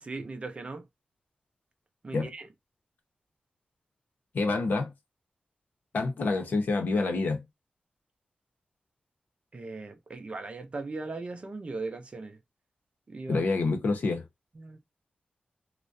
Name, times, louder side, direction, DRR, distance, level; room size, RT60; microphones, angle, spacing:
voice 1, 0.0-0.9 2.0-2.5 9.5-12.4 13.1-13.4 14.6-14.8, right 3 dB, 35° right, 0.5 m, -38 dB
voice 2, 4.3-4.9 5.9-7.4 13.3-14.2, left 3 dB, 65° left, 0.7 m, -27 dB
2.3 x 2.1 x 2.5 m
wide cardioid pair, 130°, 3 cm